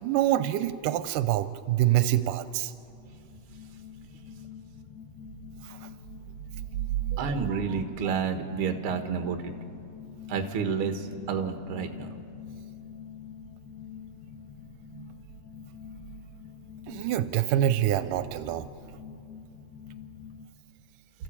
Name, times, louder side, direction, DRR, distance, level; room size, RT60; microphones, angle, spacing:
voice 1, 0.0-2.7 5.7-5.8 16.9-18.7, right 12 dB, 85° right, 13 dB, 2.2 m, -26 dB
sound 1, 2.6-20.5, left 7 dB, 65° left, 2.1 m, -46 dB
voice 2, 7.1-9.5 10.3-12.1 14.9-15.1, right 6 dB, 50° right, 6 dB, 1.9 m, -30 dB
29.5 x 14.5 x 8.5 m, 2.5 s
omnidirectional pair, 3.7 m